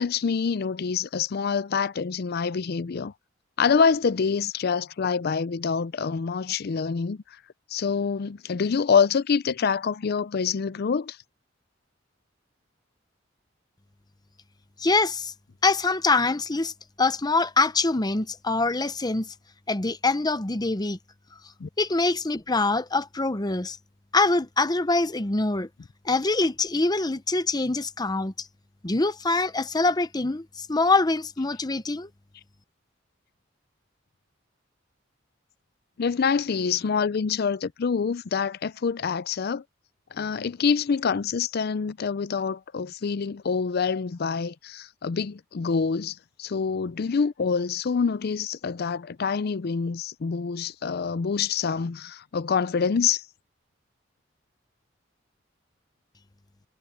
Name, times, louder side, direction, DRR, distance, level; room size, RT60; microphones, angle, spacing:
voice 1, 0.0-3.1 3.6-7.2 7.7-11.2 21.6-21.7 36.0-39.6 40.1-53.2, left 5 dB, 55° left, 0.5 m, -26 dB
voice 2, 14.8-15.3 15.6-16.7 17.0-19.3 19.7-21.0 21.8-23.8 24.1-25.7 26.0-28.5 28.8-32.1, left 3 dB, 20° left, 0.8 m, -24 dB
head